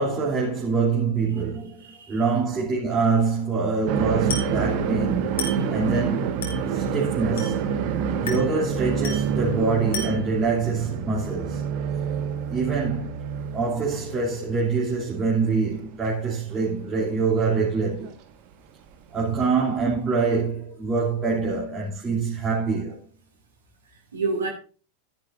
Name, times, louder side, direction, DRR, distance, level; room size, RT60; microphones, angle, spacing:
voice 1, 0.0-6.3 6.7-7.7 8.2-11.6 12.5-13.2 13.5-18.1 19.1-23.0, right 4 dB, 20° right, 2.9 m, -25 dB
voice 2, 1.8-2.2 19.3-19.4 23.9-24.5, right 4 dB, 70° right, 2.8 m, -29 dB
sound 1, 3.9-14.9 15.2-15.3 16.5-16.6 18.0-18.1 19.7-19.8, right 7 dB, 45° right, 1.5 m, -27 dB
Glass, 4.3-4.6 5.4-5.7 6.4-6.7 7.4-7.7 8.3-8.6 9.0-9.4 9.9-10.3, left 3 dB, 60° left, 3.4 m, -33 dB
13.0 x 10.5 x 2.6 m
figure-of-eight pair, 90°, 0 cm